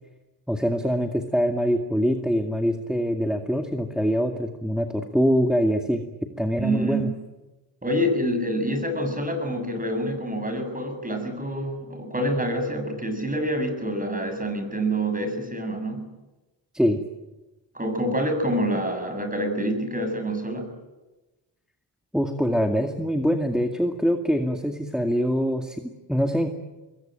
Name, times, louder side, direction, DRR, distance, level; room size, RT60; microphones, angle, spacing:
voice 1, 0.5-6.0 6.4-7.1 16.7-17.0 22.1-26.5, equal, ahead, 5 dB, 2.2 m, -24 dB
voice 2, 6.6-7.1 7.8-16.1 17.7-20.8, right 1 dB, 20° right, 7 dB, 7.4 m, -27 dB
26.0 x 21.5 x 9.2 m, 1.1 s
cardioid pair, 80°, 45 cm